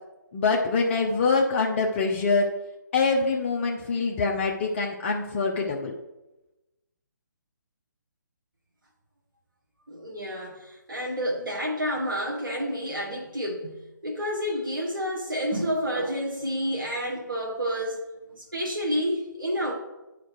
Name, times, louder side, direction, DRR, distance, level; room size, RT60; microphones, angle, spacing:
voice 1, 0.3-2.5 2.9-5.9, left 4 dB, 35° left, 0 dB, 0.9 m, -24 dB
voice 2, 9.9-18.0 18.3-19.7, equal, 80° right, -1 dB, 1.9 m, -29 dB
9.9 x 5.0 x 4.8 m, 1.0 s
figure-of-eight pair, 145°, 11 cm